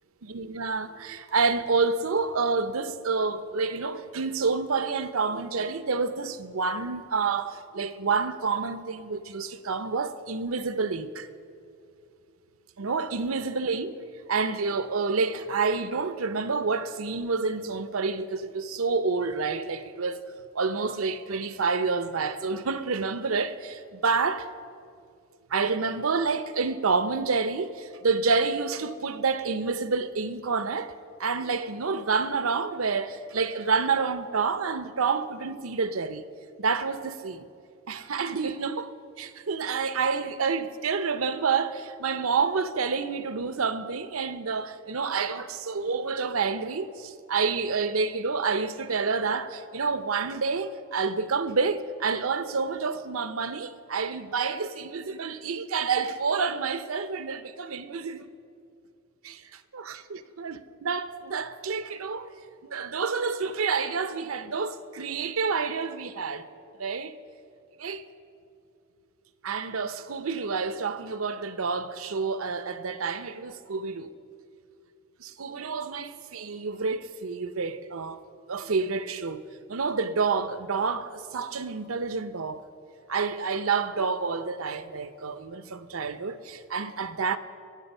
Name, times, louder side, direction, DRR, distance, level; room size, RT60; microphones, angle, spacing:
voice 1, 0.2-11.3 12.8-14.0 14.3-20.2 20.5-24.5 25.5-30.9 31.2-36.2 36.6-37.5 37.9-58.3 59.2-62.3 62.6-66.4 66.8-67.2 67.8-68.0 69.4-74.1 75.2-78.2 78.5-79.4 79.7-82.6 83.1-87.4, right 4 dB, 85° right, 0.7 m, -28 dB
22.0 x 8.3 x 5.5 m
head